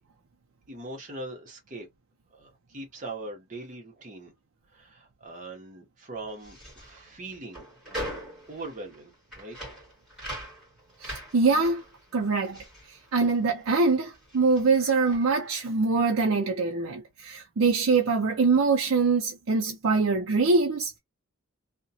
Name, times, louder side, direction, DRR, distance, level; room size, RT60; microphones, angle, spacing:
voice 1, 0.7-1.9 2.3-4.3 4.7-9.6, right 2 dB, 35° right, 0.8 m, -41 dB
sound 1, 6.3-13.8 14.0-15.5, equal, 5° right, 1.7 m, -42 dB
voice 2, 11.0-11.8 12.1-12.6 12.9-21.0, right 4 dB, 65° right, 0.5 m, -24 dB
2.8 x 2.1 x 2.7 m
head